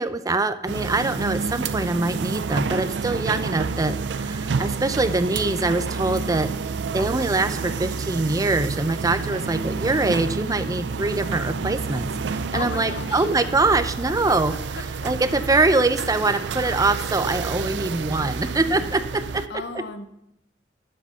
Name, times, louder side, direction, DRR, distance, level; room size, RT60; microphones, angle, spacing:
voice 1, 0.0-6.5 6.9-14.5 15.0-19.4, right 2 dB, 20° right, 11 dB, 0.5 m, -23 dB
sound 1, 0.7-19.5, right 5 dB, 75° right, 0.4 m, -29 dB
voice 2, 9.2-9.5 12.2-13.4 14.3-14.4 14.7-15.1 16.2-16.5 19.5-20.1, left 4 dB, 70° left, 10 dB, 0.8 m, -36 dB
10.5 x 7.7 x 5.5 m, 0.82 s
head